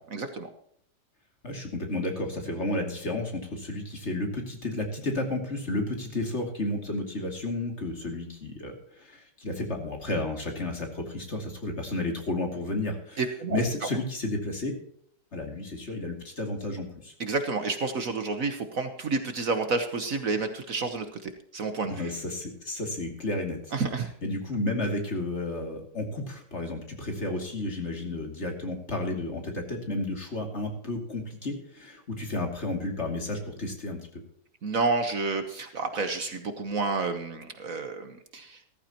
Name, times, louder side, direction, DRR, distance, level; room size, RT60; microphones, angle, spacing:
voice 1, 0.1-0.5 13.2-13.6 17.2-22.1 23.7-24.1 34.6-38.6, right 3 dB, 55° right, 8 dB, 1.4 m, -30 dB
voice 2, 1.4-13.2 13.5-14.7 15.3-17.1 21.9-23.7 24.2-34.2, left 2 dB, 40° left, 2 dB, 2.8 m, -32 dB
15.0 x 14.5 x 3.0 m, 0.67 s
omnidirectional pair, 1.9 m